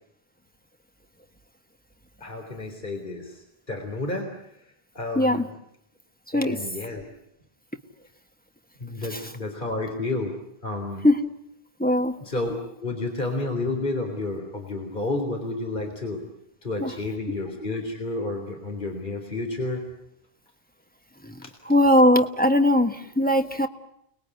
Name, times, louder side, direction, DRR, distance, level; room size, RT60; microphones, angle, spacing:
voice 1, 2.2-4.3 4.9-5.5 6.3-7.0 8.8-10.3 10.6-11.1 12.2-16.2 16.6-19.8 21.4-21.5, left 2 dB, 50° left, 3 dB, 3.8 m, -31 dB
voice 2, 5.1-5.5 6.3-6.6 9.1-9.3 11.0-11.3 11.8-12.2 16.8-16.9 21.2-23.7, left 1 dB, 10° left, 5 dB, 1.5 m, -20 dB
30.0 x 20.5 x 9.6 m, 0.78 s
omnidirectional pair, 1.0 m